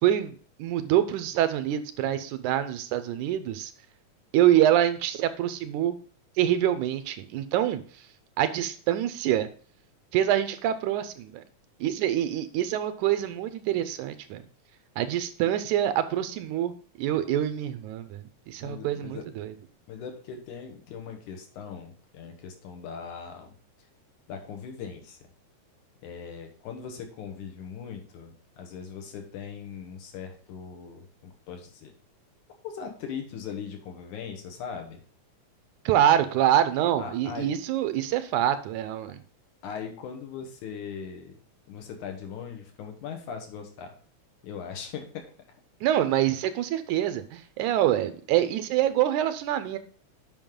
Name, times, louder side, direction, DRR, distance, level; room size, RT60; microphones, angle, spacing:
voice 1, 0.0-3.7 4.3-6.0 6.4-7.8 8.4-9.5 10.1-11.4 11.8-14.4 15.0-19.5 35.9-39.2 45.8-49.8, right 11 dB, 85° right, 12 dB, 2.2 m, -25 dB
voice 2, 18.6-19.3 19.9-23.6 24.3-25.2 26.0-31.9 32.6-35.0 37.0-37.5 39.6-41.3 41.7-43.9 44.4-45.2, left 6 dB, 80° left, 4 dB, 2.7 m, -39 dB
8.9 x 5.3 x 3.6 m, 0.43 s
omnidirectional pair, 3.4 m